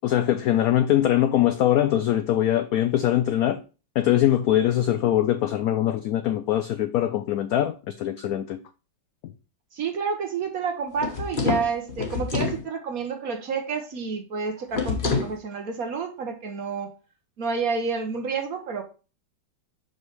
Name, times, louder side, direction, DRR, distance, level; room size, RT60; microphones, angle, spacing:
voice 1, 0.0-3.6 4.0-8.6, left 12 dB, 80° left, 0.8 m, -22 dB
voice 2, 9.7-16.9 17.4-18.8, right 5 dB, 55° right, 1.2 m, -29 dB
sound 1, 10.9-12.6 14.7-15.4, left 4 dB, 35° left, 0.9 m, -27 dB
6.1 x 5.3 x 3.2 m
omnidirectional pair, 2.1 m